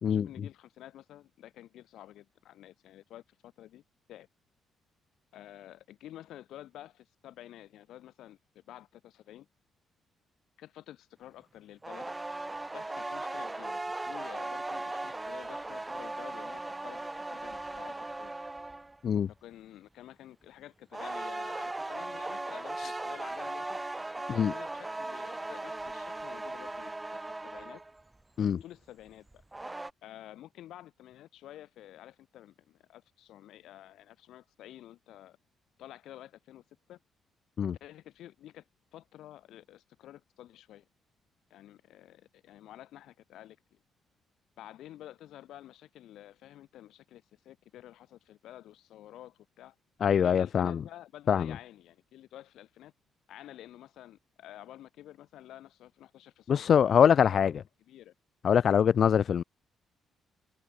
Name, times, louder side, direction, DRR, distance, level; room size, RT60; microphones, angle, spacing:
voice 1, 0.0-3.8 4.1-4.3 5.3-9.5 10.6-12.1 12.7-18.3 19.4-23.8 24.1-27.8 28.4-29.4 30.0-35.4 35.8-37.0 37.8-38.6 38.9-40.9 41.5-43.8 44.6-49.7 50.1-52.9 53.3-56.7 57.3-57.5 57.8-58.1, left 13 dB, 80° left, 3.2 m, -50 dB
sound 1, 11.8-19.0 20.9-28.0 29.3-29.9, right 2 dB, 15° right, 1.4 m, -38 dB
voice 2, 50.0-50.8 51.3-51.5 56.5-57.5 58.4-59.4, left 8 dB, 55° left, 0.3 m, -23 dB
cardioid pair, 90°, 0 cm